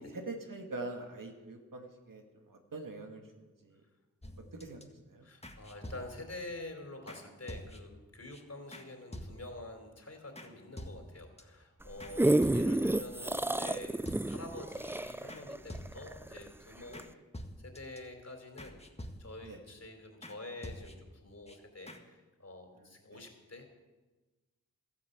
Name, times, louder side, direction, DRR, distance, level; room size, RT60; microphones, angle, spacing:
voice 1, 0.1-3.2 3.6-3.8 4.6-4.8 5.1-5.3 19.4-19.6 23.1-23.2, right 2 dB, 80° right, 3 dB, 2.1 m, -43 dB
sound 1, 4.2-4.8 5.4-6.4 7.1-7.2 7.5-8.0 8.3-8.4 8.7-8.9 9.1-9.6 10.3-10.5 10.8-11.4 12.0-12.9 13.6-13.8 14.0-14.6 14.9-15.0 15.3-15.4 15.7-16.2 16.9-17.1 17.3-18.0 18.6-19.5 20.2-20.4 20.6-21.2 21.5-21.6 21.9-22.0, equal, 20° left, 1.8 m, -47 dB
voice 2, 5.2-17.1 17.6-18.8 19.2-23.7, left 2 dB, 50° left, 4 dB, 3.5 m, -47 dB
sound 2, 11.8-16.5 17.0-17.1, right 1 dB, 5° right, 0.4 m, -30 dB
13.5 x 10.5 x 8.1 m, 1.2 s
wide cardioid pair, 50°, 32 cm